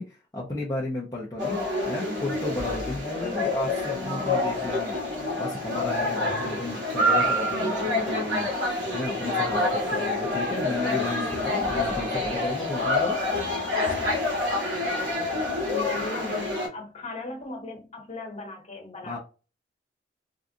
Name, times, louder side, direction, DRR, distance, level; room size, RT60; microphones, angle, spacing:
voice 1, 0.0-1.6 1.9-5.0 5.4-8.5 8.9-13.2 19.0-19.2, left 2 dB, 20° left, 0.7 m, -33 dB
sound 1, 1.4-16.7, left 2 dB, 85° right, 1.7 m, -27 dB
voice 2, 15.7-19.2, left 2 dB, 40° left, 1.3 m, -37 dB
3.7 x 2.4 x 2.6 m
head